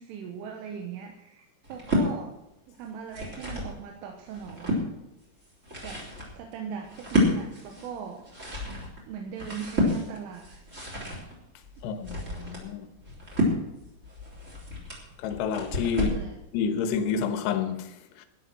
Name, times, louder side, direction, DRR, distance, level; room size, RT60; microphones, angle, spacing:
voice 1, 0.0-2.3 2.7-4.9 5.8-6.0 6.4-8.2 9.1-10.6 15.9-16.4, right 7 dB, 85° right, 3.6 m, -39 dB
sound 1, 1.6-2.1 2.9-3.7 4.2-4.8 5.4-16.3, left 1 dB, 20° right, 3.0 m, -30 dB
voice 2, 11.8-12.9 15.2-16.1 16.5-18.3, left 6 dB, 70° left, 2.9 m, -29 dB
12.5 x 10.5 x 6.1 m
omnidirectional pair, 5.5 m